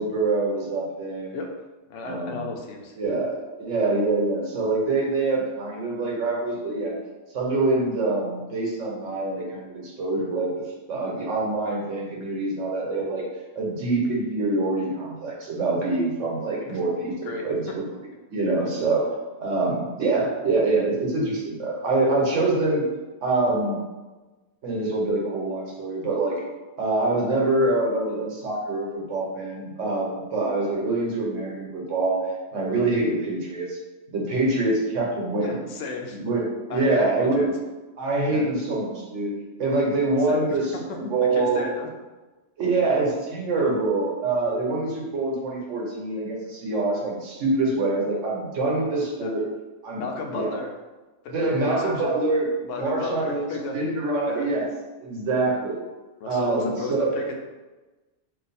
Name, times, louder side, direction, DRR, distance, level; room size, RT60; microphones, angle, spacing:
voice 1, 0.0-1.5 2.0-2.5 3.0-7.0 7.3-10.5 10.9-13.2 13.5-17.1 17.4-17.8 18.3-19.0 19.4-22.9 23.2-23.8 24.6-26.4 26.8-32.2 32.5-33.8 34.1-35.6 36.1-37.5 38.0-39.3 39.6-41.6 42.6-49.4 49.8-50.0 50.3-50.5 51.3-52.5 52.7-54.7 55.0-55.8 56.2-57.1, right 2 dB, 90° right, -3 dB, 1.2 m, -25 dB
voice 2, 1.9-3.2 16.7-16.8 17.2-17.5 18.6-18.8 35.4-36.2 36.7-37.5 38.3-38.5 40.3-40.6 41.3-41.9 42.9-43.0 43.6-43.8 48.7-49.0 49.2-49.3 49.9-50.7 51.2-52.2 52.6-53.8 54.3-54.5 55.3-55.6 56.2-57.4, left 3 dB, 90° left, 2 dB, 0.9 m, -34 dB
2.6 x 2.5 x 4.1 m, 1.2 s
omnidirectional pair, 1.2 m